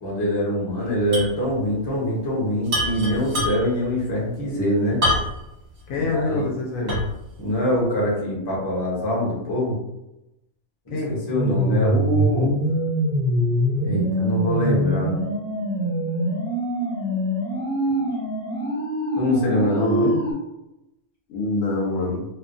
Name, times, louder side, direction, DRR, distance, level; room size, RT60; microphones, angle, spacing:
voice 1, 0.0-5.0 6.1-6.4 7.4-9.7 10.9-12.5 13.8-15.1 19.2-20.2, left 1 dB, 20° left, -5 dB, 0.7 m, -24 dB
sound 1, 1.1-1.4 1.7-1.8 2.7-3.8 5.0-5.5 6.0-6.1 6.9-7.3, left 1 dB, 50° right, 1.3 m, -24 dB
voice 2, 5.9-7.0 10.9-11.2 17.9-18.1 21.3-22.3, left 2 dB, 75° left, -1 dB, 1.0 m, -25 dB
sound 2, 11.3-20.3, right 1 dB, 20° right, 0.8 m, -24 dB
2.6 x 2.2 x 2.5 m, 0.91 s
omnidirectional pair, 1.5 m